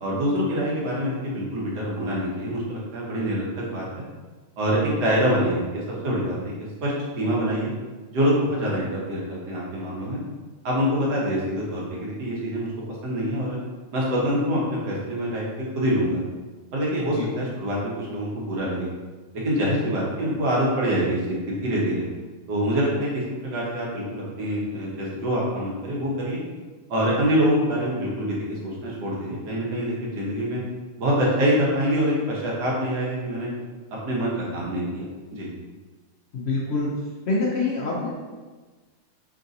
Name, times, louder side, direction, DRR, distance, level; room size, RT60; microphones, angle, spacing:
voice 1, 0.0-4.0 4.6-6.5 6.8-7.7 8.1-10.2 10.6-12.7 13.0-13.6 13.9-15.5 15.7-16.2 16.7-18.9 19.3-22.1 22.5-26.4 26.9-30.6 31.0-33.5 34.0-35.0 35.3-35.5, equal, 85° right, -5 dB, 1.6 m, -25 dB
voice 2, 36.3-36.9 37.3-38.2, left 3 dB, 60° left, -4 dB, 0.7 m, -25 dB
3.7 x 2.5 x 3.9 m, 1.3 s
omnidirectional pair, 1.7 m